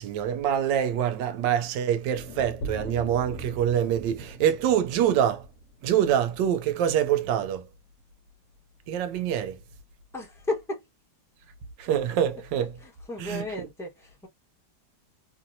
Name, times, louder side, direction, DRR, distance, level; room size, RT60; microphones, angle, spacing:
voice 1, 0.0-5.5 5.8-7.7 8.9-9.6 11.8-12.8 13.2-13.7, right 9 dB, 85° right, 1.3 m, -25 dB
sound 1, 2.2-6.3, equal, 65° left, 0.7 m, -41 dB
voice 2, 10.1-10.8 13.1-14.3, left 2 dB, ahead, 0.9 m, -33 dB
3.0 x 2.6 x 2.6 m
omnidirectional pair, 1.9 m